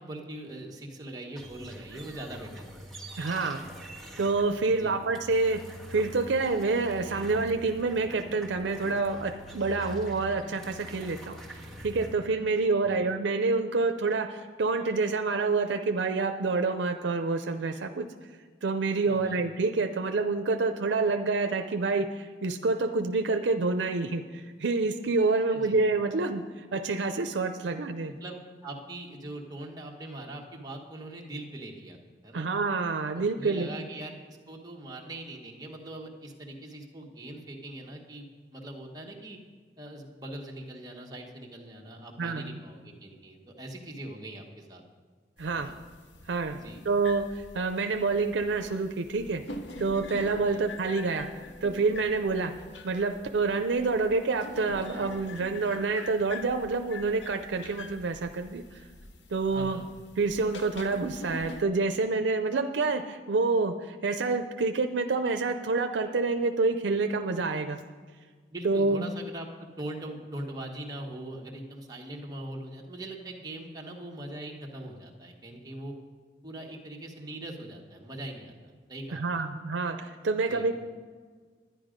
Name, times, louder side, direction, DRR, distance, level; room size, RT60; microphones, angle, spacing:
voice 1, 0.0-2.7 4.6-5.0 12.8-13.0 19.0-19.4 25.5-25.7 28.1-32.0 32.2-32.5 33.1-38.3 38.5-39.4 39.8-44.8 45.5-45.7 46.5-46.8 50.4-50.6 59.5-59.9 68.5-75.9 76.4-79.4 80.5-80.7, right 1 dB, 20° right, 0 dB, 1.3 m, -41 dB
sound 1, 1.3-12.1, right 1 dB, ahead, 1.5 m, -45 dB
voice 2, 3.2-3.6 4.2-5.6 5.9-18.1 18.6-28.1 32.3-33.7 42.2-42.6 45.4-45.7 46.3-49.4 49.8-51.3 51.6-52.5 52.8-58.8 59.3-59.8 60.2-67.8 68.6-69.0 79.1-80.8, right 3 dB, 90° right, 7 dB, 0.5 m, -28 dB
sound 2, 45.4-61.6, left 2 dB, 85° left, 0.8 m, -45 dB
11.0 x 10.0 x 5.1 m, 1.6 s
head